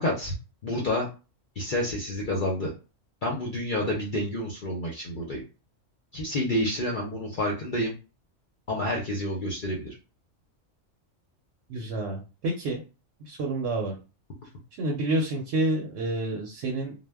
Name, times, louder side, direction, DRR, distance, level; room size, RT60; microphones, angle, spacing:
voice 1, 0.0-0.3 0.6-1.1 1.6-2.7 3.2-5.4 6.1-7.9 8.7-9.9, left 1 dB, 55° left, -2 dB, 0.6 m, -29 dB
voice 2, 11.7-12.8 13.2-13.9 14.8-16.9, right 2 dB, 65° right, 0 dB, 0.8 m, -28 dB
2.1 x 2.1 x 3.3 m, 0.32 s
omnidirectional pair, 1.3 m